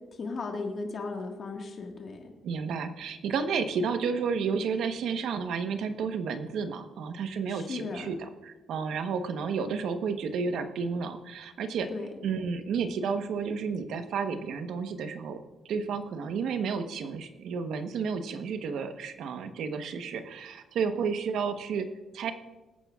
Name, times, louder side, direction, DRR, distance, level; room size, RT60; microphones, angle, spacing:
voice 1, 0.1-2.3 7.5-8.1 11.9-12.1, left 3 dB, 45° left, 2 dB, 1.6 m, -36 dB
voice 2, 2.4-11.9 12.2-15.4 15.7-22.3, right 5 dB, 75° right, 8 dB, 1.0 m, -31 dB
22.0 x 9.2 x 2.4 m, 1.2 s
cardioid pair, 90°, 0 cm